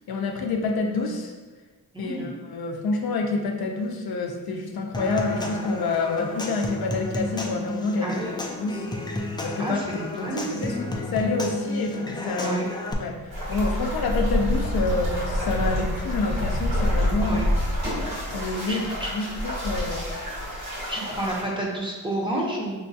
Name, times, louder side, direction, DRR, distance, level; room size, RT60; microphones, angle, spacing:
voice 1, 0.1-1.3 2.0-8.2 8.6-8.8 9.4-10.7 11.1-12.6 13.0-17.4 18.3-20.1, left 3 dB, 65° left, 2 dB, 0.5 m, -28 dB
voice 2, 1.9-2.3 8.0-8.3 9.6-10.8 12.4-12.7 17.2-17.5 18.7-19.1 20.9-22.8, right 1 dB, 15° right, -3 dB, 0.7 m, -30 dB
Human voice / Acoustic guitar / Percussion, 4.9-12.9, left 1 dB, 10° left, 0.3 m, -32 dB
sound 1, 13.3-21.4, equal, 65° right, 1.4 m, -27 dB
5.2 x 2.2 x 2.6 m, 1.3 s
wide cardioid pair, 110°, 39 cm